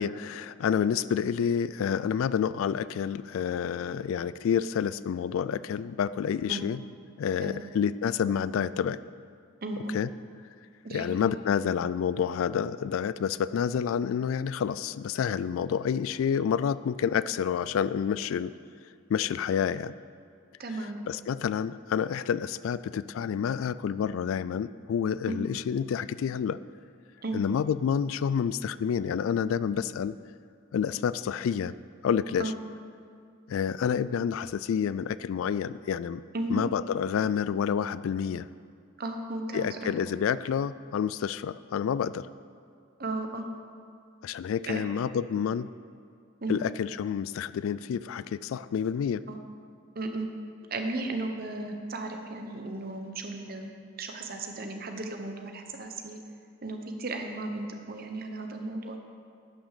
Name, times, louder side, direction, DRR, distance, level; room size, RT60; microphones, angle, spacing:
voice 1, 0.0-6.8 7.2-9.0 9.9-10.1 10.9-18.5 19.1-19.9 21.1-26.6 27.3-30.1 30.7-31.7 32.0-32.5 33.5-36.2 36.5-38.5 39.5-42.3 44.2-45.7 46.5-49.2, left 7 dB, 80° left, 17 dB, 0.3 m, -29 dB
voice 2, 9.6-9.9 10.8-11.1 20.6-21.0 25.2-25.4 27.2-27.4 32.4-32.5 36.3-36.6 39.0-39.9 43.0-43.4 44.7-44.8 46.4-46.5 49.3-49.4 49.9-50.3 50.7-53.7 54.0-56.2 56.6-59.0, right 2 dB, 45° right, 4 dB, 1.0 m, -35 dB
11.0 x 6.3 x 6.6 m, 2.2 s
head